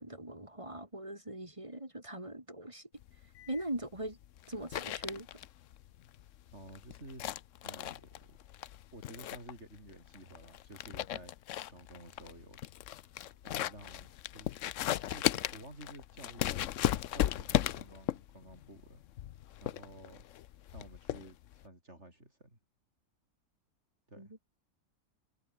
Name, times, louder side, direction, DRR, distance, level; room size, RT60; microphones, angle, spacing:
voice 1, 0.0-2.9 3.5-4.2 4.5-5.3 24.2-24.3, right 1 dB, 20° right, 3.3 m, -41 dB
sound 1, 3.0-21.6, left 12 dB, 65° left, 0.9 m, -37 dB
voice 2, 6.5-7.2 7.6-8.4 8.9-11.3 11.7-12.6 13.4-14.5 15.0-16.6 17.1-19.0 19.6-20.2 20.7-22.6 24.1-24.3, right 1 dB, 45° right, 7.9 m, -52 dB
omnidirectional pair, 1.6 m